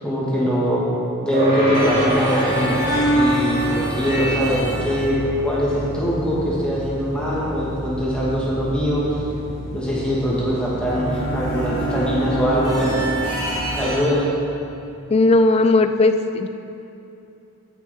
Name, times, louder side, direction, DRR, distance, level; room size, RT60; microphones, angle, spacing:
voice 1, 0.0-0.8 1.2-2.8 3.1-9.0 9.7-13.0 13.8-14.3, equal, 5° left, -7 dB, 1.3 m, -22 dB
sound 1, 1.3-11.0, equal, 45° right, 1.9 m, -28 dB
sound 2, 1.7-14.0, right 1 dB, 55° left, 2.4 m, -27 dB
voice 2, 15.1-16.5, left 2 dB, 25° left, 8 dB, 0.3 m, -16 dB
16.0 x 6.1 x 3.4 m, 2.7 s
head